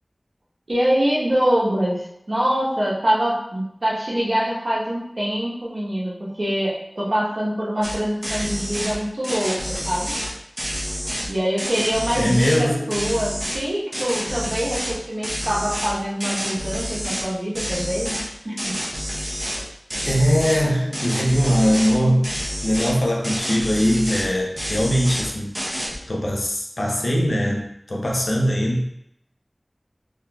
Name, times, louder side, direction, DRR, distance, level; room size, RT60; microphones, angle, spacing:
voice 1, 0.7-10.2 11.3-18.8, equal, 75° right, -6 dB, 1.0 m, -24 dB
sound 1, 7.8-8.0 8.2-9.0 9.2-11.3 11.6-12.6 12.9-13.6 13.9-14.9 15.2-17.3 17.5-18.3 18.6-19.6 19.9-20.6 20.9-22.0 22.2-22.9 23.2-24.3 24.6-25.3 25.5-26.0, equal, 30° right, 0.8 m, -28 dB
voice 2, 12.2-13.1 18.4-18.6 20.0-22.3 22.6-25.5 26.1-28.8, equal, 85° left, -1 dB, 0.6 m, -21 dB
3.8 x 3.0 x 2.2 m, 0.80 s
wide cardioid pair, 45°, 0 cm